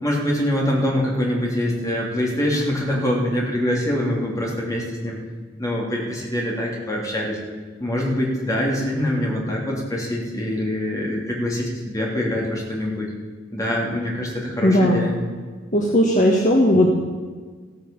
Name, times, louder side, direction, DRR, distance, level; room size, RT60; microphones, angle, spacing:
voice 1, 0.0-5.2 5.6-7.4 7.8-13.1 13.5-15.1, left 1 dB, 20° left, -3 dB, 3.3 m, -24 dB
voice 2, 14.6-15.0 15.7-17.0, equal, 40° left, -1 dB, 1.6 m, -17 dB
15.0 x 9.3 x 7.2 m, 1.5 s
head